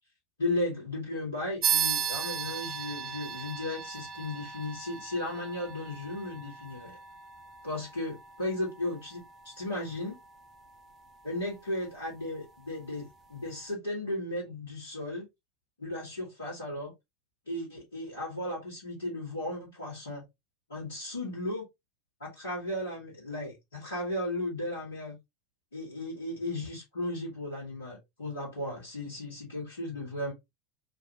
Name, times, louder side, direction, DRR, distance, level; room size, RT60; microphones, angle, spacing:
voice 1, 0.4-7.0 7.6-10.2 11.2-15.3 15.8-16.9 17.5-20.2 20.7-21.6 22.2-25.2 25.7-30.3, left 1 dB, 75° left, 1.8 m, -35 dB
sound 1, 1.6-11.6, right 8 dB, 30° right, 0.4 m, -36 dB
3.0 x 2.5 x 3.0 m
figure-of-eight pair, 85°, 0 cm